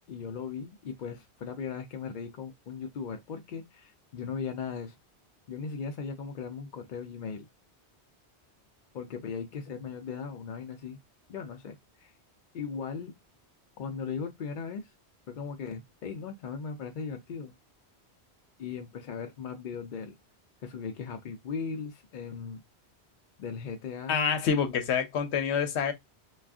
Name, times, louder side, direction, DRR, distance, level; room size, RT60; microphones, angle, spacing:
voice 1, 0.1-5.0 5.5-7.5 8.9-11.0 11.3-12.1 12.5-13.1 13.8-14.9 15.3-17.5 18.6-20.1 20.6-22.6 23.4-24.4, left 6 dB, 55° left, 0.6 m, -38 dB
voice 2, 24.1-25.9, left 7 dB, 80° left, 0.9 m, -27 dB
3.5 x 2.3 x 2.4 m
omnidirectional pair, 1.1 m